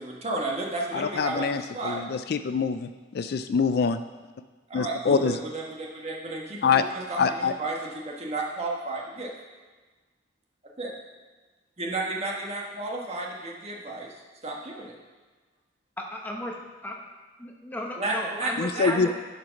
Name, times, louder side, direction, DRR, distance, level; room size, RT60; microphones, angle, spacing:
voice 1, 0.0-2.0 4.7-7.8 8.0-9.3 10.8-10.9 11.8-14.1 14.4-14.9 18.0-19.1, right 2 dB, 35° right, -2 dB, 1.4 m, -32 dB
voice 2, 0.9-4.0 4.7-5.4 6.6-6.8 7.2-7.5 18.6-19.1, left 5 dB, 50° left, 10 dB, 0.3 m, -25 dB
voice 3, 16.0-16.6 16.8-17.0 17.4-19.1, left 1 dB, 10° left, 0 dB, 0.9 m, -35 dB
11.0 x 5.0 x 5.9 m, 1.3 s
head